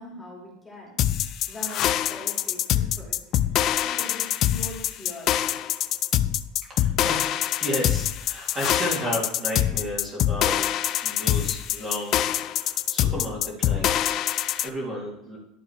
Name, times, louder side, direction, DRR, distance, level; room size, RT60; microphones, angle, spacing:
voice 1, 0.0-3.2 3.8-5.4, left 1 dB, 10° left, -4 dB, 2.7 m, -42 dB
sound 1, 1.0-14.7, left 12 dB, 45° left, 0.3 m, -24 dB
voice 2, 6.6-10.6 11.0-14.2 14.6-15.4, equal, 20° right, -5 dB, 2.5 m, -33 dB
11.5 x 3.9 x 4.6 m, 0.83 s
supercardioid pair, 130°, 0 cm